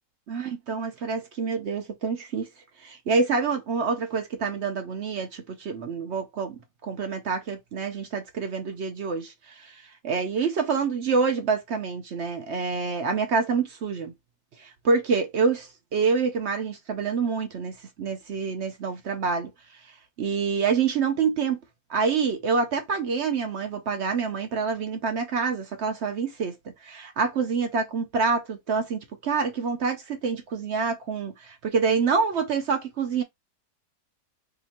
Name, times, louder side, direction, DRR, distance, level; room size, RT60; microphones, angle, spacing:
voice 1, 0.3-2.5 2.8-6.6 6.8-14.1 14.6-19.5 20.2-21.6 21.9-26.6 26.8-33.2, right 5 dB, 70° right, 0.6 m, -27 dB
2.9 x 2.6 x 4.1 m
omnidirectional pair, 1.8 m